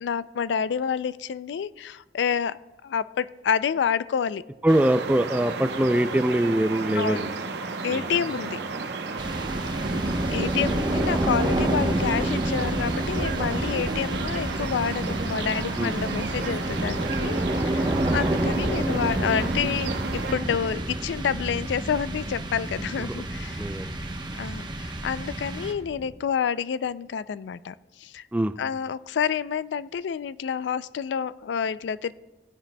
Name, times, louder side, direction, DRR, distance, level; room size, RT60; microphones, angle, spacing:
voice 1, 0.0-4.4 6.9-7.3 7.8-8.6 10.3-23.6 24.4-28.2 28.6-32.1, left 7 dB, 85° left, 17 dB, 0.3 m, -28 dB
voice 2, 4.6-7.3 7.9-8.1 9.5-9.6 15.8-16.3 17.9-18.1 23.0-23.2 23.6-24.0 28.3-28.6, right 1 dB, 10° right, 11 dB, 0.3 m, -24 dB
sound 1, 4.7-20.3, right 3 dB, 75° right, 0.9 m, -34 dB
sound 2, 5.5-21.0, right 3 dB, 50° right, 0.6 m, -38 dB
sound 3, 9.2-26.1, right 1 dB, 25° right, 0.9 m, -28 dB
17.5 x 10.0 x 2.2 m, 1.1 s
head